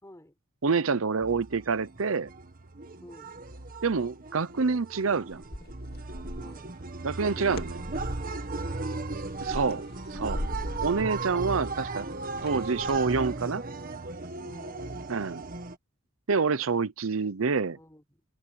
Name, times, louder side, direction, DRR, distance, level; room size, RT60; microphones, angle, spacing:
voice 1, 0.0-0.4 3.0-3.4 6.4-6.8 7.2-7.5 7.9-9.7 10.3-10.7 14.4-15.2 17.7-18.2, left 1 dB, 15° left, 4.8 m, -53 dB
voice 2, 0.6-2.3 3.8-5.4 7.0-7.8 9.4-9.8 10.2-10.4 10.8-12.1 12.4-13.6 15.1-15.4 16.3-17.8, right 4 dB, 85° right, 0.7 m, -27 dB
sound 1, 1.2-15.8, right 3 dB, 45° right, 1.6 m, -36 dB
sound 2, 5.3-6.6 7.2-8.3 9.0-13.3, left 1 dB, 50° left, 2.2 m, -39 dB
head